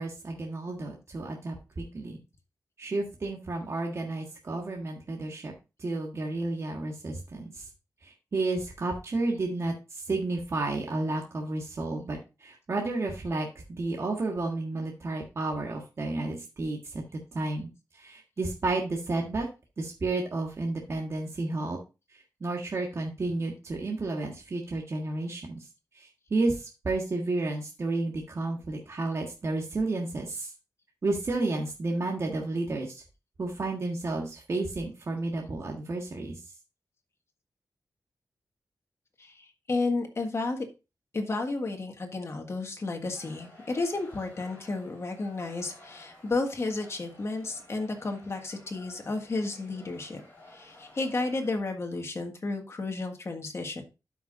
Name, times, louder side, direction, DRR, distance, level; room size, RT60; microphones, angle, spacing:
voice 1, 0.0-2.2 2.8-5.5 5.8-7.6 8.0-17.0 17.3-19.5 19.8-21.8 22.1-25.7 25.9-30.5 31.0-33.0 33.4-36.4, right 2 dB, 45° right, 0 dB, 1.6 m, -32 dB
voice 2, 39.2-40.6 41.1-50.2 50.5-53.8, left 3 dB, 45° left, 3 dB, 1.7 m, -32 dB
sound 1, 43.0-51.6, left 1 dB, 25° left, 5.5 m, -53 dB
12.5 x 5.9 x 2.5 m, 0.28 s
wide cardioid pair, 130°, 7 cm